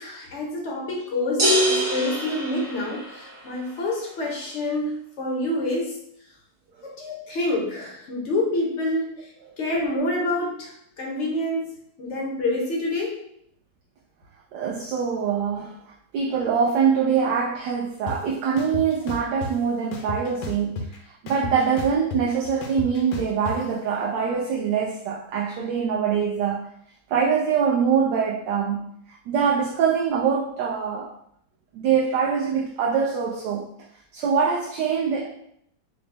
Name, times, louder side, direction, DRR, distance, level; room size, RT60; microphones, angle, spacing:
voice 1, 0.0-6.0 6.8-9.3 9.6-13.2, left 1 dB, 70° left, -2 dB, 0.6 m, -27 dB
sound 1, 1.4-3.4, equal, 40° right, 0.9 m, -24 dB
voice 2, 14.5-15.7 16.1-20.8 21.2-26.6 27.1-28.9 29.3-31.1 31.8-33.6 34.1-35.3, right 6 dB, 75° right, -2 dB, 1.1 m, -23 dB
sound 2, 18.1-18.2 18.6-19.5 19.9-21.0 21.3-23.6, left 3 dB, 90° left, 1.4 m, -33 dB
5.0 x 2.0 x 3.2 m, 0.72 s
omnidirectional pair, 2.1 m